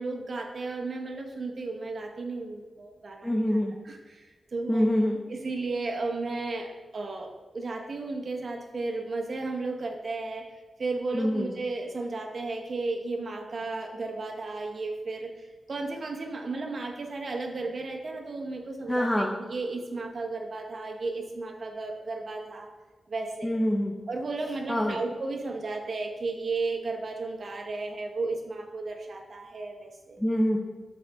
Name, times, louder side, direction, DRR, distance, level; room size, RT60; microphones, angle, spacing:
voice 1, 0.0-3.6 3.8-4.9 5.3-7.3 7.5-10.4 10.8-22.7 23.1-23.5 24.1-30.2, right 3 dB, 60° right, 2 dB, 0.9 m, -34 dB
voice 2, 3.2-3.7 4.7-5.2 11.1-11.5 18.9-19.3 23.4-23.9 24.7-25.0 30.2-30.6, equal, 10° left, 0 dB, 0.6 m, -25 dB
8.1 x 4.0 x 3.4 m, 1.3 s
wide cardioid pair, 85°, 0 cm